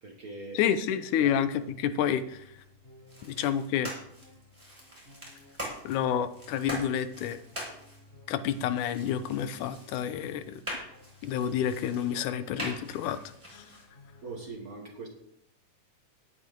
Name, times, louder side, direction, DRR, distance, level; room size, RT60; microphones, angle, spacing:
voice 1, 0.0-0.6 1.2-1.4 3.2-3.3 14.2-15.1, right 3 dB, 65° right, 0.9 m, -41 dB
voice 2, 0.5-2.4 3.2-3.9 5.8-7.4 8.3-10.6 11.2-13.2 13.5-13.6, left 9 dB, 80° left, 2.2 m, -29 dB
sound 1, 0.8-14.5, left 2 dB, 20° left, 6.8 m, -57 dB
sound 2, 3.1-13.8, equal, 10° right, 5.5 m, -43 dB
17.5 x 9.5 x 3.8 m
omnidirectional pair, 3.6 m